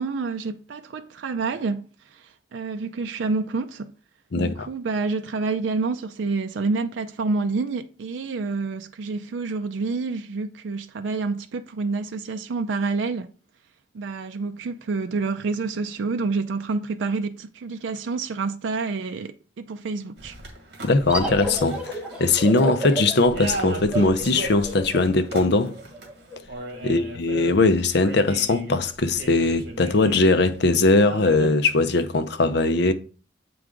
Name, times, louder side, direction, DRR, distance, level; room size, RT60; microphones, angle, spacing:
voice 1, 0.0-1.9 2.5-3.9 4.3-13.3 13.9-20.3 26.8-27.0, right 4 dB, 85° right, 0.4 m, -28 dB
voice 2, 4.3-4.7 20.8-25.7 26.8-32.9, left 3 dB, 65° left, 0.6 m, -20 dB
sound 1, 20.2-30.6 31.0-31.5, right 2 dB, 65° right, 1.8 m, -36 dB
sound 2, 21.1-26.4, equal, 5° right, 1.1 m, -31 dB
7.7 x 4.7 x 3.7 m
head